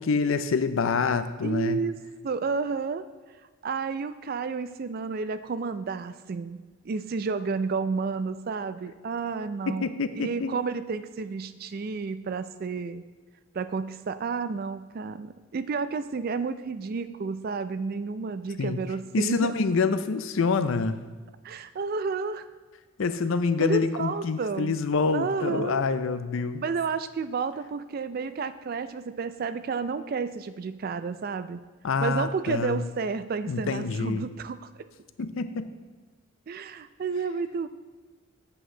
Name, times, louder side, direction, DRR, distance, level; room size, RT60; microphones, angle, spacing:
voice 1, 0.0-1.8 9.7-10.5 18.6-18.8 19.1-21.0 23.0-26.6 31.8-32.8 33.5-34.3 35.2-35.7, left 4 dB, 65° left, 11 dB, 0.5 m, -26 dB
voice 2, 1.4-3.0 3.6-9.9 10.2-13.0 13.5-19.5 21.4-22.4 23.6-24.8 25.1-25.9 26.6-31.6 32.0-34.7 36.5-37.7, right 5 dB, 45° right, 12 dB, 0.3 m, -31 dB
8.0 x 7.7 x 3.7 m, 1.4 s
head